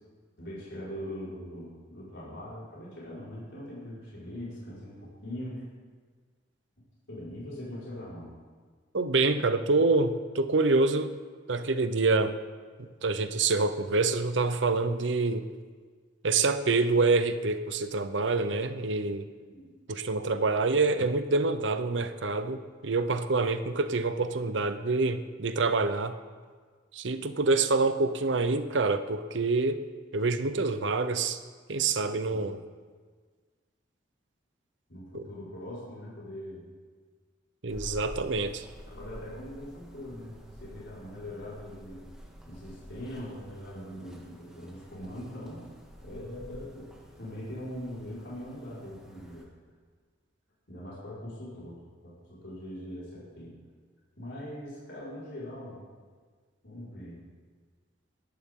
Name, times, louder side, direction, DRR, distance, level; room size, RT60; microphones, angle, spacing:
voice 1, 0.4-5.6 7.1-8.3 19.3-19.7 32.3-32.5 34.9-36.6 38.9-42.0 42.4-45.6 46.0-46.9 47.2-49.5 50.7-53.6 54.2-55.8 56.6-57.2, left 1 dB, 70° left, -8 dB, 5.0 m, -41 dB
voice 2, 8.9-11.1 11.5-12.3 12.8-15.5 16.2-19.3 19.9-26.2 26.9-29.8 30.1-31.4 31.7-32.6 35.1-35.2 37.6-38.6, right 3 dB, 75° right, 10 dB, 0.8 m, -26 dB
sound 1, 37.7-49.4, equal, 5° right, 1.7 m, -49 dB
21.0 x 11.5 x 3.8 m, 1.5 s
head